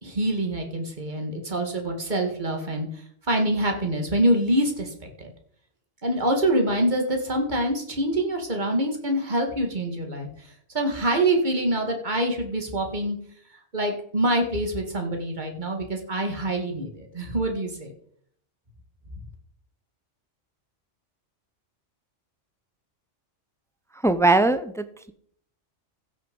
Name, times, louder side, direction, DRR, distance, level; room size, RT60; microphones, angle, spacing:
voice 1, 0.0-2.9 3.3-4.9 5.2-5.3 6.0-10.3 10.7-13.2 13.7-17.9, right 1 dB, 40° right, 3 dB, 2.3 m, -25 dB
voice 2, 24.0-25.1, right 2 dB, 5° left, 11 dB, 0.4 m, -21 dB
15.5 x 6.5 x 5.4 m, 0.63 s
omnidirectional pair, 1.2 m